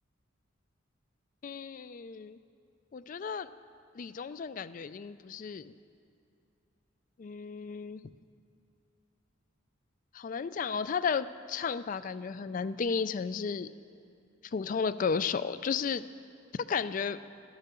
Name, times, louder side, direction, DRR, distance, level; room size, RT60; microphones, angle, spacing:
voice 1, 1.4-2.4 2.9-3.5 3.9-5.7 7.2-8.0 10.1-13.7 14.5-16.0 16.7-17.2, left 5 dB, 40° left, 14 dB, 0.3 m, -33 dB
12.5 x 11.0 x 6.8 m, 2.6 s
head